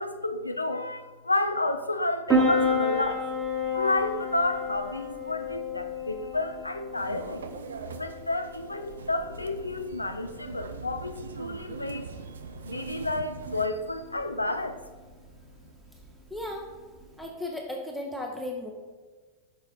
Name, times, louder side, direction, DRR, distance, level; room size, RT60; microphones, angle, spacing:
voice 1, 0.0-3.2 3.7-7.5 8.0-12.1 12.6-14.8, left 2 dB, 85° left, 7 dB, 0.3 m, -30 dB
Piano, 2.3-17.3, left 1 dB, 20° right, 1.1 m, -32 dB
sound 1, 7.0-13.7, right 5 dB, 70° right, 0.3 m, -42 dB
voice 2, 16.3-16.7 17.2-18.7, left 1 dB, ahead, 0 dB, 0.6 m, -35 dB
6.0 x 4.2 x 3.9 m, 1.4 s
figure-of-eight pair, 90°, 0 cm